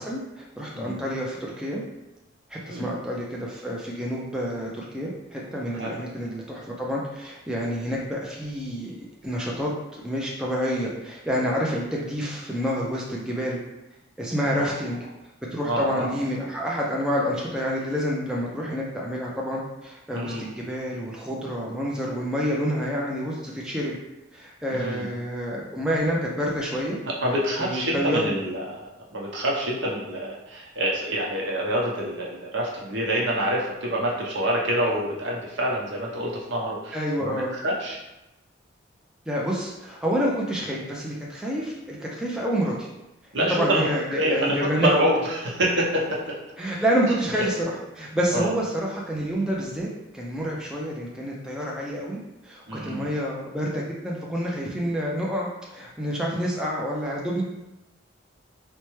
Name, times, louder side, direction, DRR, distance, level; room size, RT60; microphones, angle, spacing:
voice 1, 0.0-1.8 2.5-8.9 9.2-13.6 14.2-15.0 15.5-24.0 24.3-27.0 27.6-28.2 36.9-37.5 39.3-42.9 43.5-44.9 46.6-49.9 50.1-57.4, equal, 5° right, -4 dB, 0.3 m, -28 dB
voice 2, 15.7-16.1 20.1-20.5 24.7-25.1 27.0-28.8 29.1-38.0 43.3-46.2 47.3-47.5 48.3-48.5 52.7-53.1, right 1 dB, 70° right, -3 dB, 0.8 m, -27 dB
4.3 x 2.1 x 3.1 m, 0.95 s
head